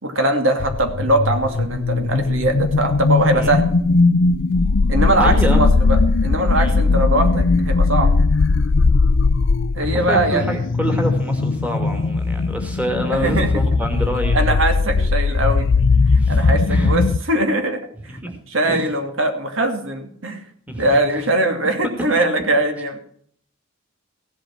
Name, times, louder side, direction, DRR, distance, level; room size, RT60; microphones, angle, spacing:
voice 1, 0.0-3.7 4.9-8.1 9.7-10.5 13.1-13.5 14.3-15.7 16.3-17.8 18.1-18.2 18.5-20.4 20.8-23.0, right 1 dB, 75° right, 6 dB, 2.6 m, -21 dB
sound 1, 0.6-17.2, left 3 dB, 65° left, 0.5 m, -18 dB
voice 2, 5.2-5.6 6.6-6.8 9.8-14.4 14.9-15.1 16.1-16.4 16.7-17.0 18.1-18.4 18.7-18.9 20.7-21.3, equal, 5° right, 3 dB, 2.5 m, -27 dB
16.0 x 7.9 x 6.1 m, 0.62 s
head